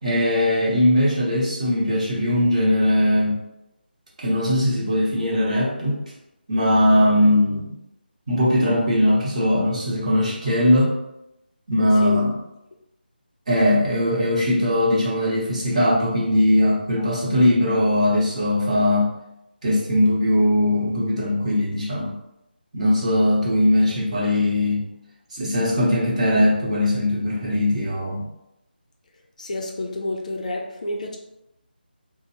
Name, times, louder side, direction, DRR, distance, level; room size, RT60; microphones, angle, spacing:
voice 1, 0.0-3.4 4.2-6.0 6.5-7.7 8.3-10.9 11.7-12.3 13.5-19.1 19.6-22.1 22.7-24.9 25.3-28.3, left 1 dB, 40° right, -5 dB, 0.9 m, -20 dB
voice 2, 29.4-31.2, left 1 dB, 45° left, 1 dB, 0.4 m, -29 dB
2.9 x 2.0 x 2.8 m, 0.87 s
figure-of-eight pair, 160°, 6 cm